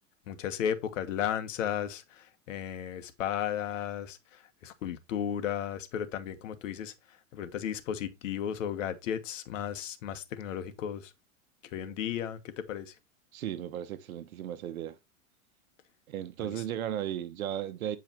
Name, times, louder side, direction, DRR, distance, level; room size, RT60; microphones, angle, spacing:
voice 1, 0.3-4.2 4.6-6.9 7.3-11.1 11.7-12.9 16.4-16.5, left 9 dB, 65° left, 1.4 m, -34 dB
voice 2, 13.3-15.0 16.1-18.0, right 10 dB, 90° right, 1.1 m, -35 dB
8.6 x 5.0 x 3.0 m
supercardioid pair, 155°, 41 cm